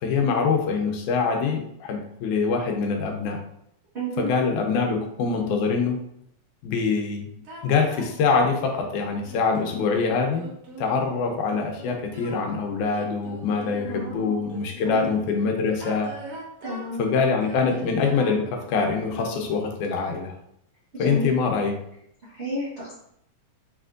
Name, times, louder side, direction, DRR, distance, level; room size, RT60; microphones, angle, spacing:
voice 1, 0.0-3.4 4.2-6.0 6.6-7.3 7.6-10.4 10.8-16.1 17.0-20.3 21.0-21.7, left 5 dB, 90° left, 3 dB, 2.1 m, -24 dB
voice 2, 3.9-4.3 13.9-14.4 14.8-15.1 16.6-17.2 20.9-21.4 22.2-22.9, right 2 dB, 45° right, -10 dB, 0.8 m, -31 dB
sound 1, 7.4-15.0 15.7-19.7, right 2 dB, 65° right, 1.9 m, -42 dB
5.7 x 3.3 x 2.5 m, 0.73 s
omnidirectional pair, 3.4 m